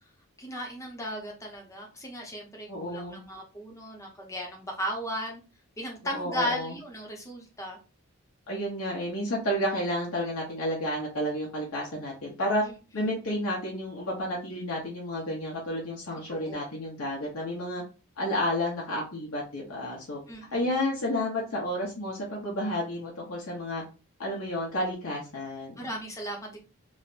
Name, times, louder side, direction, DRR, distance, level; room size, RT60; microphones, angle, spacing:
voice 1, 0.4-5.4 5.8-7.8 12.6-12.7 16.3-16.7 20.3-20.7 25.8-26.6, equal, 15° left, 0 dB, 0.6 m, -36 dB
voice 2, 2.7-3.2 6.0-6.7 8.5-12.6 12.9-17.8 18.2-20.2 20.5-23.8 24.2-25.9, left 1 dB, 80° left, -3 dB, 0.8 m, -31 dB
3.2 x 2.0 x 2.5 m, 0.33 s
head